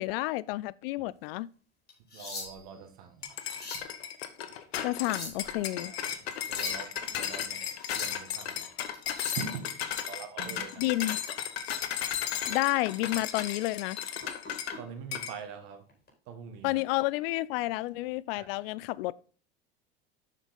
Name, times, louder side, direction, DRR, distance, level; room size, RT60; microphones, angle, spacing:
voice 1, 0.0-1.5 4.8-5.9 10.8-11.2 12.5-14.0 16.6-19.1, left 18 dB, 70° left, 0.5 m, -30 dB
sound 1, 1.9-2.8 3.3-3.9 4.8-5.5 6.3-6.8 7.6-8.2 8.9-9.5 11.5-11.7 12.2-12.4 12.9-13.0 14.2-14.8 15.9-16.1, left 3 dB, 35° left, 4.2 m, -42 dB
voice 2, 2.1-3.9 5.8-8.7 9.3-9.7 10.0-10.8 14.8-15.9 16.2-16.8 18.4-18.5, right 6 dB, 65° right, 1.6 m, -44 dB
sound 2, 3.2-14.8 15.1-15.4, left 9 dB, 85° left, 1.0 m, -35 dB
7.3 x 6.4 x 3.8 m
hypercardioid pair, 80°, 30 cm